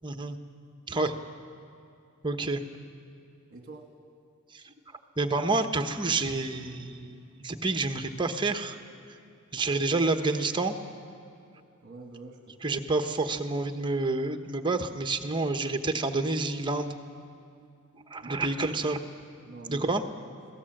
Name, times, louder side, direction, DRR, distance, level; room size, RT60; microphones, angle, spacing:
voice 1, 0.0-0.4 0.9-1.1 2.2-2.6 4.5-4.6 5.2-8.8 9.5-10.7 12.6-16.9 18.1-19.0 19.7-20.0, right 3 dB, 20° right, 6 dB, 0.9 m, -28 dB
voice 2, 3.5-3.9 11.8-12.8 18.2-18.8 19.4-20.3, right 2 dB, 40° right, 1 dB, 1.7 m, -46 dB
26.0 x 17.5 x 7.7 m, 2.5 s
head